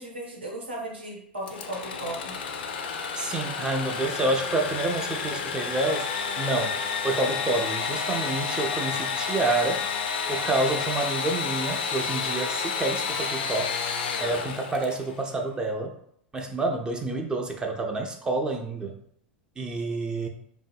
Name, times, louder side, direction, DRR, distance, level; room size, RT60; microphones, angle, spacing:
voice 1, 0.0-2.4, right 1 dB, 80° right, -2 dB, 0.8 m, -36 dB
Engine / Sawing, 1.4-15.1, left 6 dB, 65° left, 0.3 m, -30 dB
voice 2, 3.2-6.1 6.4-9.9 10.3-13.8 14.2-16.0 16.3-19.0 19.6-20.3, right 2 dB, 15° right, 3 dB, 0.3 m, -28 dB
2.6 x 2.4 x 2.2 m, 0.68 s
figure-of-eight pair, 90°, 6 cm